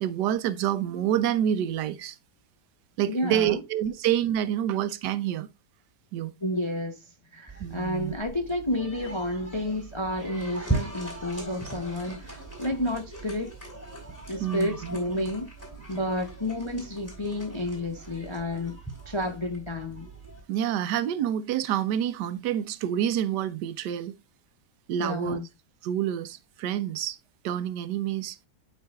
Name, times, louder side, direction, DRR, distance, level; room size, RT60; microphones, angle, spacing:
voice 1, 0.0-2.2 3.0-5.5 6.1-6.3 7.6-8.1 14.4-15.0 20.5-24.1 24.9-25.4 25.8-27.2 27.4-28.4, right 10 dB, 85° right, 1.2 m, -27 dB
voice 2, 3.1-3.6 6.4-7.0 7.3-13.5 14.3-15.5 15.9-18.8 19.1-20.1 25.0-25.5, left 1 dB, 30° left, 0.5 m, -30 dB
sound 1, 7.5-20.4, right 3 dB, 10° left, 3.5 m, -39 dB
11.5 x 4.8 x 2.3 m
omnidirectional pair, 1.8 m